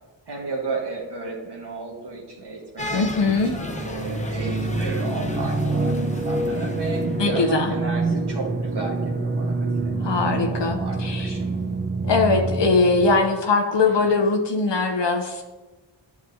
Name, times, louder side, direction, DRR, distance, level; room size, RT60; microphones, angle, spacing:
voice 1, 0.3-3.1 3.5-10.2 10.5-11.6 13.8-14.1, right 3 dB, 60° right, -2 dB, 1.4 m, -34 dB
sound 1, 2.8-7.3, left 1 dB, 15° left, 0.8 m, -34 dB
voice 2, 2.9-3.6 7.2-7.7 10.0-11.3 12.0-15.4, left 3 dB, 65° left, 4 dB, 0.8 m, -21 dB
sound 2, 3.2-13.1, right 3 dB, 25° right, 0.6 m, -26 dB
9.3 x 6.1 x 2.7 m, 1.2 s
cardioid pair, 65°, 46 cm